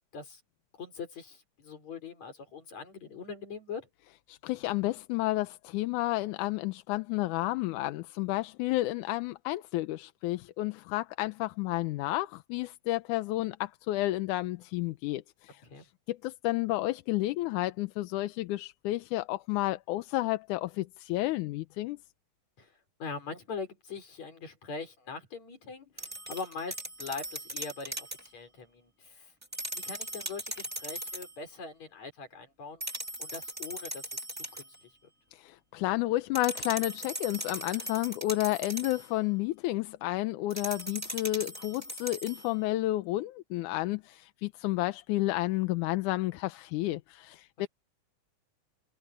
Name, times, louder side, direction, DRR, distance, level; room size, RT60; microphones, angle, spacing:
voice 1, 0.8-3.9 15.6-15.8 22.6-22.7 23.0-29.3 29.7-32.8 33.2-34.2 34.5-34.7, left 4 dB, 60° left, 5.9 m, -42 dB
voice 2, 4.3-22.0 35.3-47.7, left 17 dB, 80° left, 2.1 m, -31 dB
sound 1, 26.0-28.3 29.4-31.4 32.8-34.8 36.3-39.1 40.5-42.5, right 1 dB, 5° right, 2.0 m, -39 dB
omnidirectional pair, 3.6 m